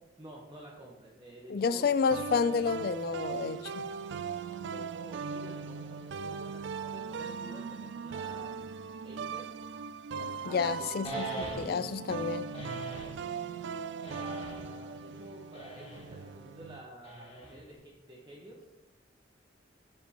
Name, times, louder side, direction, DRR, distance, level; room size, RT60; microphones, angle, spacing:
voice 1, 0.2-2.0 4.7-8.5 9.0-9.5 10.1-10.9 12.5-13.0 14.0-18.6, right 1 dB, 25° right, 1.0 m, -50 dB
voice 2, 1.5-3.9 10.5-12.5, left 5 dB, 50° left, 0.3 m, -30 dB
sound 1, 2.1-16.8, right 6 dB, 65° right, 0.3 m, -39 dB
sound 2, 11.0-12.0 12.5-13.2 14.0-14.8 15.5-16.1 17.0-17.7, right 1 dB, 30° left, 1.5 m, -42 dB
13.5 x 5.2 x 2.9 m
head